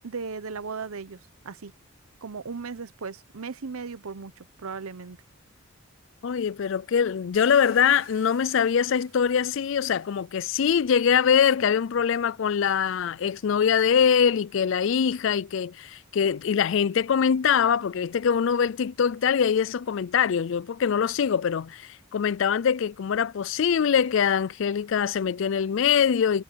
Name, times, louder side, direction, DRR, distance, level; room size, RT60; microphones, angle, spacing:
voice 1, 0.0-1.7 2.2-5.2, right 5 dB, 85° right, 0.8 m, -37 dB
voice 2, 6.2-26.4, left 7 dB, 60° left, 0.4 m, -23 dB
Car, 7.3-11.4 12.4-12.5 13.0-16.3, right 7 dB, 60° right, 7.2 m, -57 dB
head